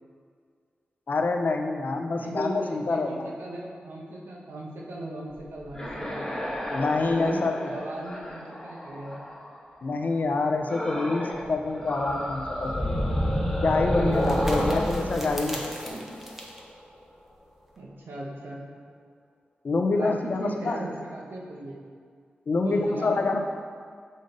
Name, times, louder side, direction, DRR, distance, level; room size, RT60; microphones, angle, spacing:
voice 1, 1.1-3.3 6.7-7.5 9.8-13.0 13.6-16.0 19.6-20.8 22.5-23.4, left 3 dB, 55° left, 4 dB, 0.6 m, -26 dB
voice 2, 2.2-6.3 6.9-9.2 14.6-14.9 15.9-16.1 17.8-18.6 19.9-21.8 22.6-23.2, right 1 dB, 90° right, -3 dB, 1.1 m, -37 dB
sound 1, 5.6-9.6 10.7-11.4 11.7-16.6, equal, 15° left, 1.3 m, -30 dB
sound 2, 12.6-17.8, equal, 10° right, 0.9 m, -42 dB
6.5 x 5.2 x 3.9 m, 2.1 s
wide cardioid pair, 85°, 3 cm